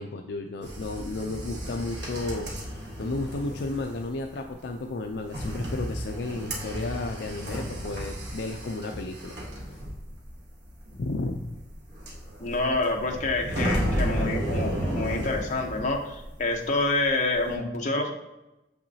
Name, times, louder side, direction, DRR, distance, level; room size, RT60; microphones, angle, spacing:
voice 1, 0.0-9.4 11.0-11.6, left 2 dB, 70° left, 4 dB, 0.4 m, -33 dB
sound 1, 0.6-16.5 16.8-17.5, equal, 75° right, 1.4 m, -33 dB
voice 2, 12.4-18.1, left 2 dB, 45° left, 1 dB, 0.9 m, -27 dB
6.8 x 5.8 x 2.7 m, 0.97 s
head